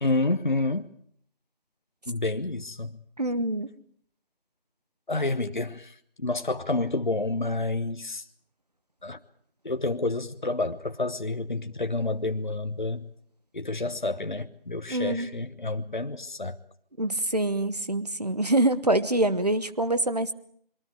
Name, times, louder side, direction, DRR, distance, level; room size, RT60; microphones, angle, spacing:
voice 1, 0.0-0.9 2.1-2.9 5.1-8.2 9.0-9.2 9.6-13.1 13.5-16.6, left 2 dB, 55° left, 1.1 m, -29 dB
voice 2, 3.2-3.7 14.9-15.3 17.0-20.3, right 1 dB, 45° right, 1.2 m, -25 dB
28.0 x 22.5 x 4.8 m
figure-of-eight pair, 170°, 29 cm